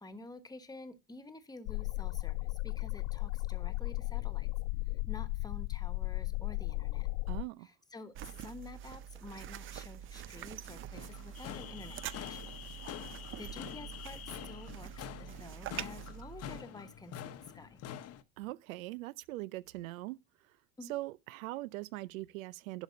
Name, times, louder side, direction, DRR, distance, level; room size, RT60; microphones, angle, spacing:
voice 1, 0.0-4.5 5.1-7.1 7.6-12.5 13.0-17.8 20.8-21.0, left 2 dB, 10° left, 1.2 m, -50 dB
sound 1, 1.7-7.4, left 22 dB, 65° left, 0.5 m, -35 dB
voice 2, 7.3-7.7 18.4-20.2 20.9-22.8, right 18 dB, 85° right, 0.6 m, -41 dB
sound 2, 8.2-16.6, right 10 dB, 30° right, 0.5 m, -45 dB
sound 3, 10.9-18.2, left 11 dB, 40° left, 0.9 m, -46 dB
11.0 x 5.2 x 5.2 m
supercardioid pair, 110°, 40 cm